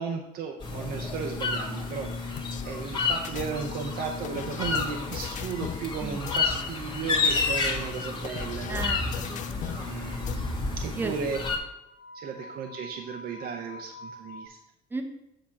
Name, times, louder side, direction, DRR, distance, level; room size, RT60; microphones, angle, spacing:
voice 1, 0.0-2.4 2.6-8.9 9.8-11.4 12.1-14.6, right 6 dB, 65° right, 1 dB, 0.7 m, -35 dB
sound 1, 0.6-11.6, left 4 dB, 30° left, 1.5 m, -30 dB
sound 2, 2.4-2.6 3.2-5.9 6.3-6.6 7.1-9.9 10.3-10.4, left 10 dB, 50° left, 0.4 m, -39 dB
sound 3, 3.7-6.4 10.3-10.4 11.8-14.5, left 1 dB, 70° left, 1.6 m, -47 dB
voice 2, 8.7-10.2 11.0-11.2 14.9-15.0, right 3 dB, 10° right, 3 dB, 0.9 m, -35 dB
7.6 x 2.9 x 5.8 m, 0.85 s
cardioid pair, 110°, 17 cm